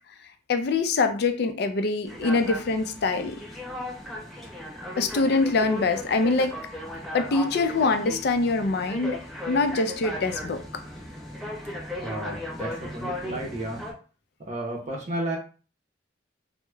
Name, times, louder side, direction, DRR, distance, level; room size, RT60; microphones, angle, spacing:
voice 1, 0.5-3.4 5.0-6.6 7.1-9.2 9.5-10.6, left 3 dB, 60° left, 8 dB, 0.4 m, -24 dB
sound 1, 2.1-13.9, left 1 dB, ahead, 0.7 m, -36 dB
voice 2, 12.0-14.0 14.5-15.4, right 1 dB, 40° right, -1 dB, 0.7 m, -32 dB
4.6 x 2.0 x 2.2 m, 0.36 s
head